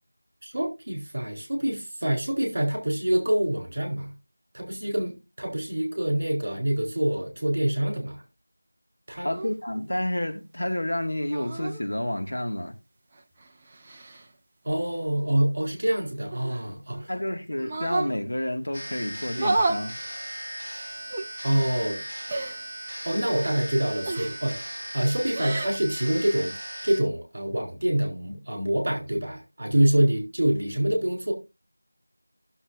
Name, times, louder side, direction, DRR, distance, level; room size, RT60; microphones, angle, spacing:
voice 1, 0.4-4.1 4.5-8.2 9.1-9.3 14.6-17.1 21.4-22.0 23.0-26.6 26.8-31.3, right 1 dB, 35° right, 4.2 m, -26 dB
voice 2, 9.2-12.7 17.1-20.0, left 1 dB, 65° left, 2.1 m, -29 dB
sound 1, 9.3-9.5 11.2-11.8 13.1-14.2 16.3-17.1 17.6-18.2 19.3-19.8 21.1-21.3 22.3-22.6 24.1-24.5 25.2-25.8, right 2 dB, 10° right, 0.4 m, -30 dB
sound 2, 18.7-27.0, right 1 dB, 10° left, 3.1 m, -38 dB
16.0 x 7.1 x 2.7 m
figure-of-eight pair, 180°, 0 cm